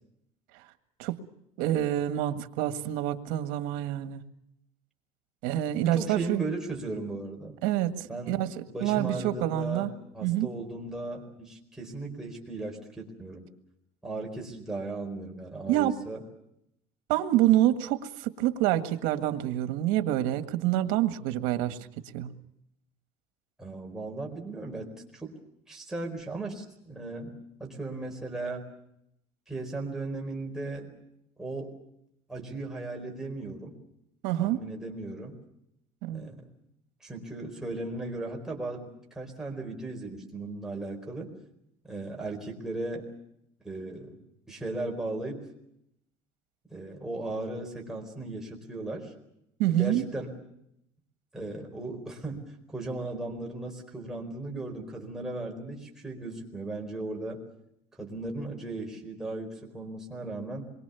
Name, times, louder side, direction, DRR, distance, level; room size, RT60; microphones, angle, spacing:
voice 1, 1.6-4.2 5.4-6.4 7.6-8.5 8.8-9.9 10.2-10.5 15.7-16.0 17.1-21.8 22.1-22.3 34.2-34.6 36.0-36.3 49.6-50.1, right 13 dB, 90° right, 9 dB, 1.8 m, -27 dB
voice 2, 5.8-7.6 8.1-8.4 8.7-13.5 14.0-16.2 21.6-21.7 23.6-25.4 25.7-28.6 29.5-30.9 31.4-31.7 32.3-33.8 34.4-35.4 36.1-36.5 37.0-41.3 41.8-43.1 43.6-44.1 44.5-45.4 46.7-49.1 49.7-50.4 51.3-52.4 52.7-57.4 58.0-60.6, right 2 dB, 5° right, 0 dB, 4.5 m, -37 dB
27.0 x 23.0 x 7.0 m, 0.79 s
cardioid pair, 150°, 14 cm